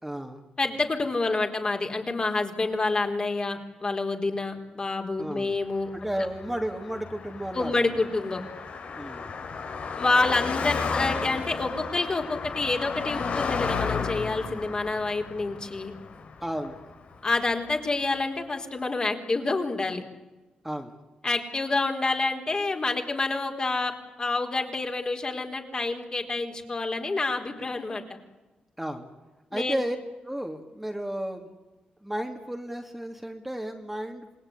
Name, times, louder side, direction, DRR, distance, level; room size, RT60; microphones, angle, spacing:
voice 1, 0.0-0.4 5.2-5.5 5.9-8.1 8.9-9.4 16.4-16.8 20.6-21.0 28.8-29.1 29.5-30.0 30.2-31.5 32.0-34.4, right 1 dB, 5° right, 3 dB, 2.6 m, -33 dB
voice 2, 0.6-5.9 7.5-8.4 10.0-15.9 17.2-20.0 21.2-23.9 24.2-28.0 29.5-29.8, left 3 dB, 35° left, 4 dB, 4.2 m, -28 dB
Car passing by, 6.0-17.5, left 5 dB, 65° left, 3.5 m, -33 dB
27.5 x 20.5 x 9.8 m, 1.1 s
cardioid pair, 105°, 3 cm